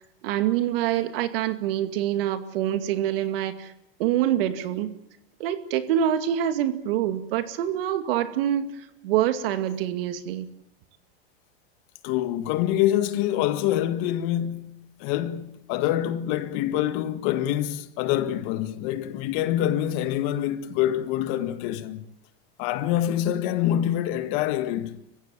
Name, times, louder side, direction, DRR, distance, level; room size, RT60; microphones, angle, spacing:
voice 1, 0.2-3.7 4.0-4.9 5.4-10.5, right 11 dB, 75° right, 2.3 m, -26 dB
voice 2, 12.0-22.0 22.6-25.0, left 12 dB, 55° left, 1.8 m, -26 dB
26.5 x 15.5 x 9.0 m
supercardioid pair, 135°, 29 cm